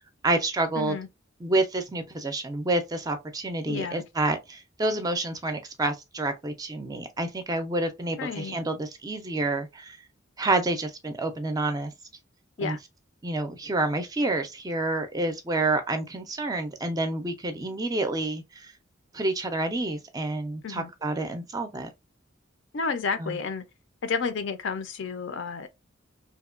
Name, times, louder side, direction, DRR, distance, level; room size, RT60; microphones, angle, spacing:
voice 1, 0.2-1.0 1.4-10.0 10.4-11.9 12.6-12.8 13.2-18.7 19.1-21.9 23.2-23.4, right 2 dB, 20° right, 0.4 m, -28 dB
voice 2, 0.8-1.1 3.7-4.0 8.2-8.6 12.6-12.8 20.6-20.9 22.7-23.6 24.0-25.7, left 5 dB, 65° left, 0.4 m, -31 dB
2.8 x 2.2 x 2.4 m
head